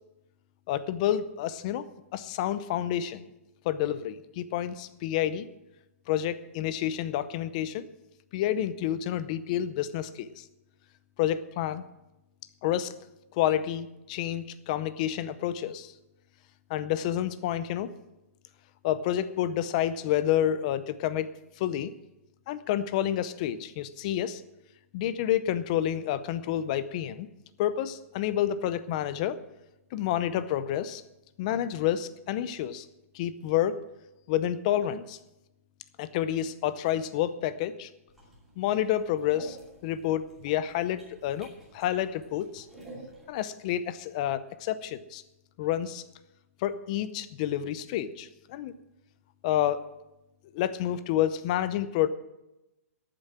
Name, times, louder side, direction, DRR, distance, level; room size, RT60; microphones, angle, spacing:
voice 1, 0.7-1.8 2.1-3.3 3.6-5.5 6.1-7.9 8.3-10.4 11.2-11.8 12.6-12.9 13.3-15.9 16.7-17.9 18.8-21.9 22.5-24.4 24.9-27.3 27.6-29.4 29.9-31.0 31.4-32.9 33.1-33.8 34.3-35.2 36.0-37.9 38.6-39.6 39.8-42.7 43.3-45.2 45.6-46.0 46.6-48.7 49.4-49.9 50.5-52.1, left 11 dB, 25° left, 14 dB, 0.6 m, -29 dB
sound 1, 38.1-43.2, right 1 dB, ahead, 2.8 m, -50 dB
12.5 x 8.9 x 7.4 m, 0.96 s
hypercardioid pair, 170°, 8 cm